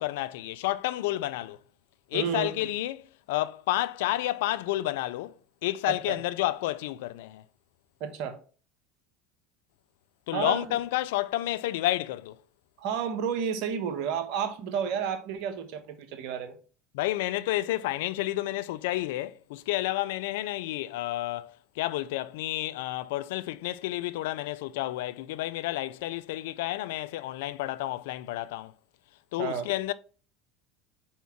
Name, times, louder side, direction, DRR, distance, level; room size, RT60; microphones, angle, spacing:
voice 1, 0.0-1.6 2.1-5.3 5.6-7.4 10.3-12.4 16.9-28.7 29.3-29.9, left 16 dB, 75° left, 0.4 m, -30 dB
voice 2, 2.1-2.5 5.9-6.1 8.0-8.4 10.3-10.8 12.8-16.6 29.4-29.7, right 7 dB, 65° right, 1.1 m, -31 dB
4.6 x 4.3 x 5.8 m
hypercardioid pair, 85°, 0 cm